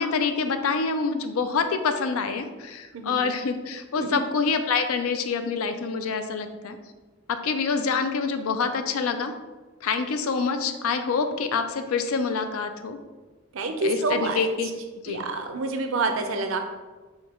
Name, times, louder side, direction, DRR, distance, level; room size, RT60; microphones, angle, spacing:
voice 1, 0.0-6.8 7.3-9.3 9.8-13.0 13.8-14.7 15.0-15.2, left 5 dB, 80° left, 8 dB, 0.4 m, -26 dB
voice 2, 13.5-14.5 15.1-16.6, right 3 dB, 65° right, 6 dB, 0.5 m, -27 dB
4.4 x 2.3 x 4.3 m, 1.3 s
head